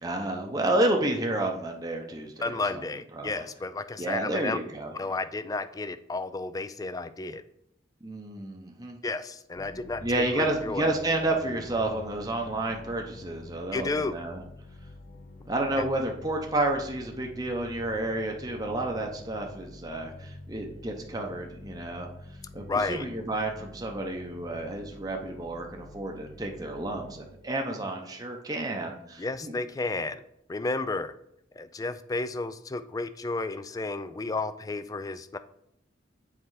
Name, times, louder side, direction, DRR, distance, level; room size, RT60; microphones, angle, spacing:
voice 1, 0.0-2.8 3.1-3.5 4.0-4.9 8.0-9.0 10.0-14.4 15.5-22.1 22.5-29.6, right 2 dB, 20° right, 1 dB, 0.7 m, -30 dB
voice 2, 2.4-4.6 4.9-7.4 9.0-10.9 13.7-14.2 15.8-15.9 22.7-23.1 29.2-30.2 30.5-31.1 31.6-35.4, left 3 dB, 20° left, 13 dB, 0.3 m, -32 dB
sound 1, 9.5-28.2, left 1 dB, 55° left, 0.8 m, -48 dB
7.7 x 4.2 x 4.7 m, 0.76 s
head